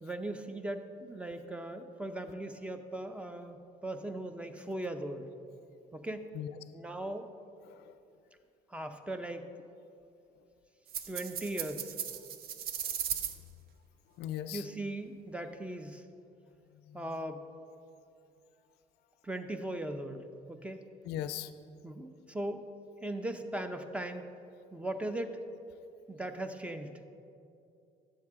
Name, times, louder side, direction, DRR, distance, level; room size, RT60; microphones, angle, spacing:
voice 1, 0.0-5.3 5.9-6.3 6.7-7.3 8.7-9.5 11.1-11.9 14.5-16.0 16.9-17.4 19.2-20.8 21.8-22.7 23.0-24.2 24.7-25.4 26.1-27.0, right 1 dB, 5° right, 8 dB, 0.6 m, -39 dB
sound 1, 10.9-13.3, right 9 dB, 60° right, 0.6 m, -37 dB
voice 2, 14.2-14.6 16.9-17.0 21.0-21.5, left 11 dB, 75° left, 12 dB, 0.4 m, -38 dB
12.0 x 7.6 x 3.6 m, 2.6 s
cardioid pair, 110°, 17 cm